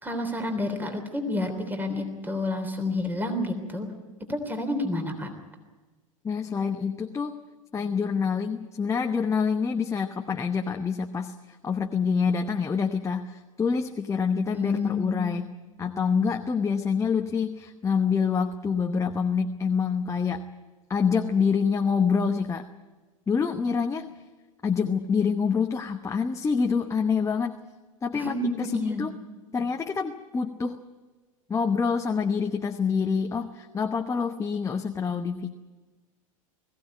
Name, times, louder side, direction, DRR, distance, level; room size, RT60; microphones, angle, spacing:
voice 1, 0.0-3.9 4.3-5.3 14.5-15.4 28.1-29.0, left 2 dB, 10° right, 6 dB, 3.3 m, -29 dB
voice 2, 6.2-7.4 7.7-15.5 15.8-20.5 20.9-22.6 23.3-24.1 24.6-27.6 28.0-29.1 29.5-30.8 31.5-35.5, left 5 dB, 15° left, 5 dB, 1.0 m, -26 dB
21.0 x 16.0 x 9.5 m, 1.3 s
hypercardioid pair, 90°, 18 cm